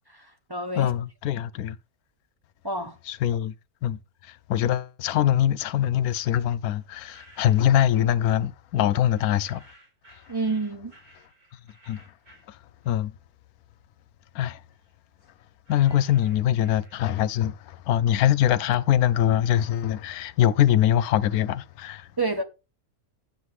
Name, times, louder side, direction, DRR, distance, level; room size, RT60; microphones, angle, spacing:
voice 1, 0.1-0.9 1.3-1.4 2.6-3.0 10.3-10.9 22.2-22.4, right 3 dB, 25° right, 0.6 m, -29 dB
voice 2, 0.8-1.8 3.1-3.5 3.8-9.6 11.9-12.0 12.5-12.6 12.9-13.1 14.3-14.6 15.7-22.1, left 11 dB, 85° left, 1.1 m, -23 dB
sound 1, 6.8-8.1 9.0-13.3 13.6-17.4, right 1 dB, 80° right, 4.2 m, -56 dB
10.5 x 7.7 x 3.2 m
omnidirectional pair, 1.5 m